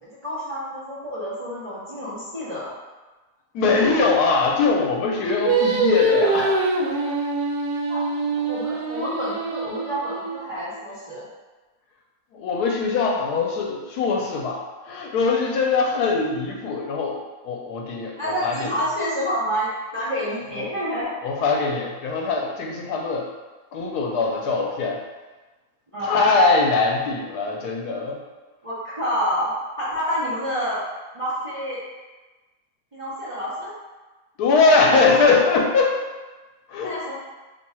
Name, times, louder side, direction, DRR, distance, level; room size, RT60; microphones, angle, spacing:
voice 1, 0.0-2.8 7.9-8.0 8.3-11.3 18.2-21.1 25.9-26.2 28.6-29.5 29.8-30.8 31.1-31.8 32.9-33.7 36.8-37.1, equal, 40° right, -10 dB, 0.4 m, -28 dB
voice 2, 3.5-6.5 12.3-17.2 17.4-18.8 20.6-20.7 21.2-23.3 23.7-25.0 26.0-28.2 34.4-36.0 36.7-37.0, left 4 dB, 85° left, 0 dB, 1.1 m, -21 dB
Singing, 5.5-10.7, right 3 dB, 85° right, 1.1 m, -24 dB
2.9 x 2.3 x 4.2 m, 1.2 s
omnidirectional pair, 1.7 m